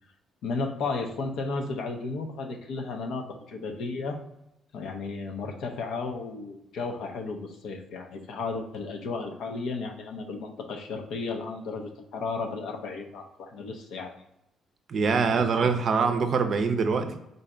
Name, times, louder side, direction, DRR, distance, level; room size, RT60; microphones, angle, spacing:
voice 1, 0.4-4.2 4.7-14.1 15.3-16.3, left 4 dB, 80° left, 3 dB, 0.6 m, -34 dB
voice 2, 14.9-17.2, right 5 dB, 55° right, 7 dB, 0.5 m, -24 dB
3.9 x 2.2 x 3.7 m, 0.85 s
cardioid pair, 75°, 0 cm